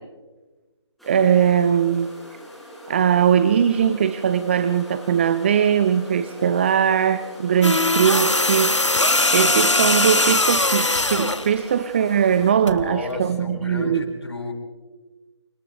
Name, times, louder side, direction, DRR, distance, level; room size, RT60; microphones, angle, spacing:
sound 1, 1.0-12.5, left 1 dB, ahead, 4.7 m, -41 dB
voice 1, 1.1-2.1 2.9-8.8 9.3-14.0, right 8 dB, 25° right, 13 dB, 0.7 m, -20 dB
sound 2, 7.6-11.5 12.7-12.9, left 2 dB, 85° left, 1.6 m, -20 dB
voice 2, 12.6-14.5, left 2 dB, 65° left, -5 dB, 7.5 m, -32 dB
30.0 x 29.0 x 3.2 m, 1.2 s
figure-of-eight pair, 150°, 15 cm